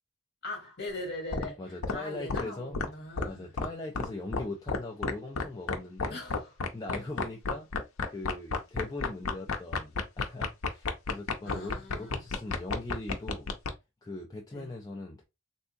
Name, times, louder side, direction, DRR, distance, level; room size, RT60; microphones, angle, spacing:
voice 1, 0.4-3.5 6.1-6.5 11.4-12.2 14.5-14.7, left 1 dB, 50° left, 1.5 m, -41 dB
sound 1, 1.3-1.4 1.8-2.0 2.3-2.4 2.7-2.9 3.2-3.3 3.6-3.7 4.0-4.1 4.3-4.4 4.7-5.1 5.4-5.5 5.7-13.7, left 4 dB, 85° left, 0.6 m, -30 dB
voice 2, 1.6-2.8 3.2-6.2 6.7-7.7 8.1-13.5 14.0-15.2, left 2 dB, 20° left, 0.4 m, -40 dB
3.5 x 2.7 x 2.6 m
head